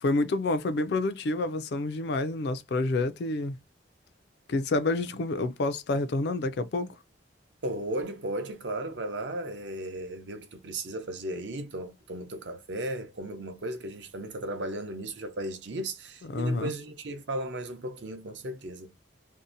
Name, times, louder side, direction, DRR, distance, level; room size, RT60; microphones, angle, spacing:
voice 1, 0.0-3.6 4.5-7.0 16.3-16.7, left 2 dB, 60° left, 0.4 m, -28 dB
voice 2, 7.6-18.9, right 1 dB, 70° right, 0.6 m, -35 dB
2.7 x 2.1 x 2.5 m
head